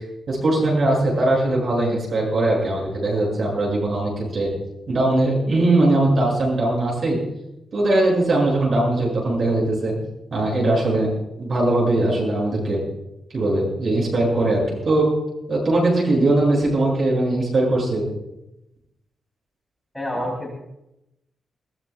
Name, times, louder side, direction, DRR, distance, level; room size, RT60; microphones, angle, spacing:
voice 1, 0.3-4.5 4.9-7.2 7.7-9.9 10.3-11.1 11.4-12.8 13.3-15.1 15.5-18.1, right 2 dB, 45° right, -3 dB, 7.5 m, -20 dB
voice 2, 19.9-20.5, equal, 10° left, -4 dB, 3.8 m, -27 dB
21.0 x 19.5 x 2.4 m, 0.89 s
wide cardioid pair, 175°, 0 cm